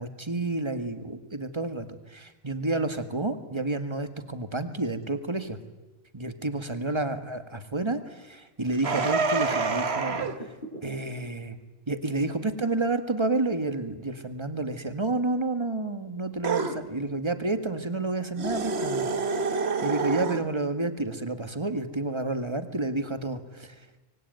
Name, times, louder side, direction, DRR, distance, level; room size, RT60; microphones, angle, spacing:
voice 1, 0.0-5.6 6.1-10.5 10.8-11.6 11.9-19.1 19.5-23.7, right 2 dB, 20° right, 9 dB, 1.8 m, -30 dB
sound 1, 8.6-10.8, equal, 40° left, 6.4 m, -40 dB
sound 2, 8.8-10.4 16.4-16.8 18.3-20.4, right 4 dB, 55° right, 1.6 m, -27 dB
25.0 x 24.0 x 9.3 m, 1.1 s
omnidirectional pair, 1.3 m